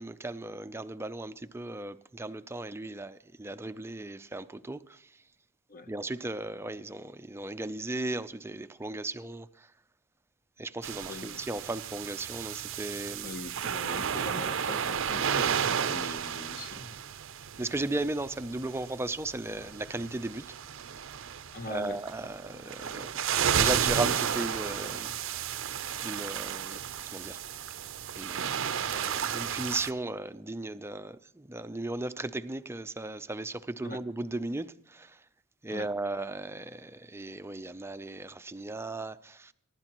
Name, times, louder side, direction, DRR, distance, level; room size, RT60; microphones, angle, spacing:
voice 1, 0.0-5.1 5.9-9.7 10.6-13.3 17.6-20.5 21.7-25.6 26.0-26.8 27.1-27.4 28.2-35.2 35.6-39.5, right 2 dB, 10° right, 0.5 m, -36 dB
sound 1, 10.8-29.9, right 8 dB, 65° right, 0.6 m, -33 dB
voice 2, 11.1-11.4 13.2-17.0 21.5-22.0 33.8-34.0 35.7-35.9, left 2 dB, 40° left, 0.9 m, -42 dB
24.0 x 12.0 x 3.0 m
head